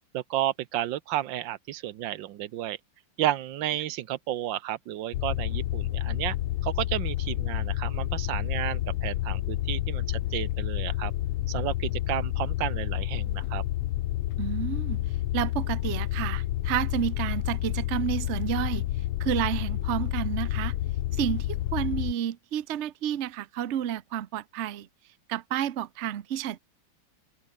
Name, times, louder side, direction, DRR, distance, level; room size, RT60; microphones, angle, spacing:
voice 1, 0.1-2.8 3.2-6.4 6.6-11.1 11.5-13.6, right 13 dB, 70° right, 1.3 m, -32 dB
sound 1, 5.1-22.1, left 14 dB, 75° left, 1.6 m, -29 dB
voice 2, 14.4-15.0 15.3-18.9 19.2-20.8 21.1-24.9 25.3-26.6, right 10 dB, 85° right, 0.6 m, -30 dB
omnidirectional pair, 2.4 m